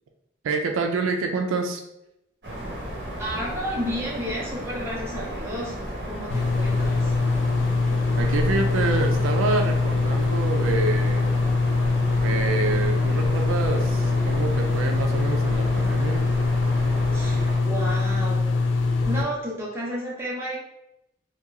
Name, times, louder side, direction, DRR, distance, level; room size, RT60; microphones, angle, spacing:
voice 1, 0.4-1.8 8.2-11.4 12.2-16.2, right 4 dB, 90° right, 4 dB, 0.3 m, -27 dB
sound 1, 2.4-17.6, right 1 dB, 60° right, 0.8 m, -34 dB
voice 2, 3.2-7.1 17.1-18.4 19.0-20.6, equal, 15° right, -5 dB, 0.6 m, -32 dB
sound 2, 6.3-19.2, left 3 dB, 75° left, 0.3 m, -23 dB
2.8 x 2.2 x 2.3 m, 0.86 s
head